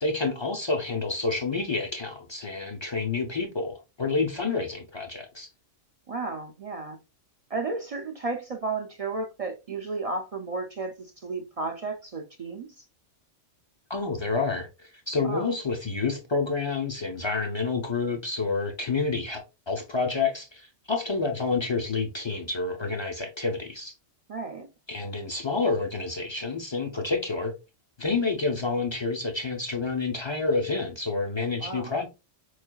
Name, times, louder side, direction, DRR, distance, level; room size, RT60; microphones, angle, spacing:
voice 1, 0.0-5.5 13.9-23.9 24.9-27.5 28.0-32.1, left 4 dB, 40° left, 0.4 m, -29 dB
voice 2, 6.1-7.0 7.5-12.7 15.2-15.5 24.3-24.7 31.6-32.0, right 3 dB, 65° right, 0.3 m, -33 dB
4.4 x 3.1 x 2.2 m
omnidirectional pair, 1.2 m